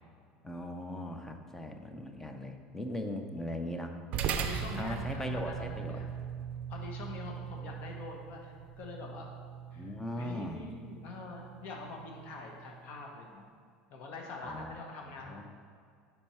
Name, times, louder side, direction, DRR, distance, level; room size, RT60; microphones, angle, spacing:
voice 1, 0.4-3.9 4.7-6.0 9.8-10.6 14.4-14.8 15.3-15.5, left 1 dB, 10° left, 5 dB, 0.6 m, -39 dB
sound 1, 4.1-12.8, right 8 dB, 50° right, 0.4 m, -40 dB
voice 2, 4.4-6.1 6.7-9.3 9.7-13.5 13.9-15.5, left 3 dB, 55° left, 0 dB, 1.2 m, -44 dB
4.4 x 4.4 x 5.6 m, 2.2 s
supercardioid pair, 115°, 3 cm